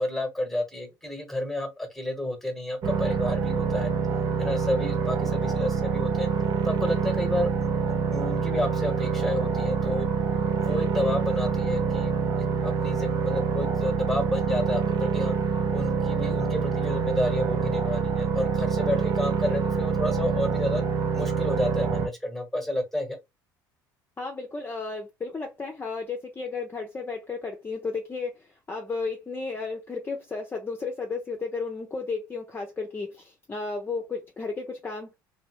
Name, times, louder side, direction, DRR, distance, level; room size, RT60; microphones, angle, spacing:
voice 1, 0.0-3.9 4.4-6.3 6.6-10.1 10.6-15.3 15.7-20.8 21.1-23.2, left 1 dB, ahead, 1.3 m, -30 dB
sound 1, 2.8-22.1, right 5 dB, 45° right, 0.8 m, -26 dB
voice 2, 24.2-35.1, left 4 dB, 20° left, 0.7 m, -33 dB
3.0 x 2.7 x 3.1 m
figure-of-eight pair, 60°, 11 cm